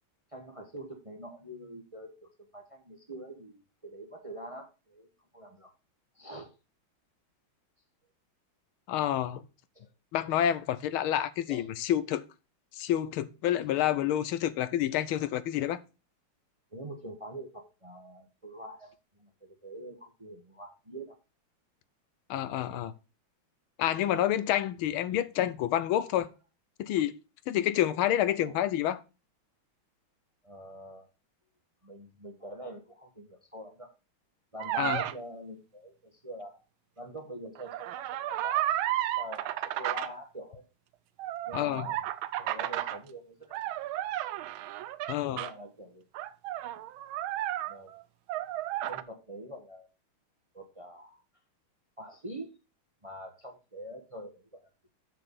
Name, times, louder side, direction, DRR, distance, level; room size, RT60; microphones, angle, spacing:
voice 1, 0.3-5.1 5.3-5.7 6.1-6.5 9.7-9.9 11.5-11.7 16.7-18.9 19.2-21.1 28.3-28.6 30.4-31.1 31.8-33.9 34.5-36.6 37.0-38.7 39.2-40.6 41.5-42.0 42.4-43.9 45.3-46.0 47.7-47.9 48.9-49.9 50.5-51.2 52.0-52.6 53.0-54.6, right 1 dB, 25° right, 0.8 m, -45 dB
voice 2, 8.9-9.4 10.1-12.2 12.7-15.8 22.3-22.9 23.8-26.3 26.8-27.1 27.5-29.0 34.8-35.1 41.5-41.9 45.1-45.4, left 11 dB, 90° left, 1.5 m, -28 dB
sound 1, 34.6-35.1 37.6-40.1 41.2-43.0 43.5-45.5 46.1-48.0 48.3-49.0, right 13 dB, 80° right, 1.4 m, -33 dB
7.4 x 6.8 x 4.1 m
omnidirectional pair, 2.3 m